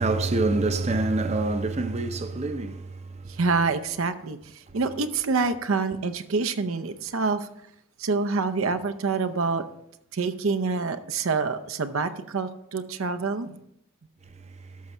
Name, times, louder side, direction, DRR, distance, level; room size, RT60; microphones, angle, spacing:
voice 1, 0.0-2.8, right 2 dB, 30° right, 0.6 m, -25 dB
voice 2, 3.3-7.5 8.0-9.6 10.1-13.6, right 4 dB, 80° right, 0.6 m, -26 dB
13.0 x 6.0 x 4.4 m
head